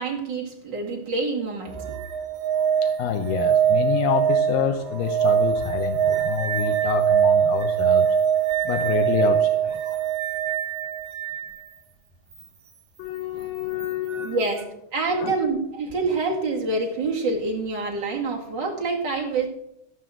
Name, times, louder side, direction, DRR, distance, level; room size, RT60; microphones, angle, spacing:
voice 1, 0.0-2.0 13.9-19.5, right 3 dB, 35° right, -1 dB, 2.4 m, -27 dB
sound 1, 1.7-11.5 13.8-13.9, right 8 dB, 55° right, 2.2 m, -22 dB
voice 2, 2.8-8.2 8.7-9.8 13.0-14.3 15.1-15.3, left 8 dB, 85° left, 6 dB, 2.5 m, -27 dB
16.5 x 5.5 x 7.7 m, 0.84 s
omnidirectional pair, 3.8 m